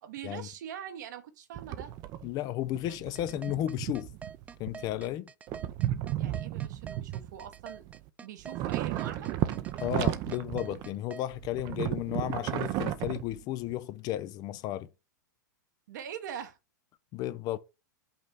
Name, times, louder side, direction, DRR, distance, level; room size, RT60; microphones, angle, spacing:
voice 1, 0.0-1.9 6.2-7.9 8.2-9.3 15.9-16.6, right 9 dB, 65° right, 1.2 m, -42 dB
sound 1, 1.5-2.3 2.6-5.2 5.5-8.1 8.4-11.0 11.3-13.7, right 13 dB, 40° right, 0.7 m, -34 dB
voice 2, 2.2-4.1 4.6-5.3 9.8-14.9 17.1-17.6, left 13 dB, 40° left, 0.6 m, -33 dB
sound 2, 2.9-11.3, right 6 dB, 15° right, 0.3 m, -46 dB
5.6 x 3.3 x 5.5 m
hypercardioid pair, 105°, 11 cm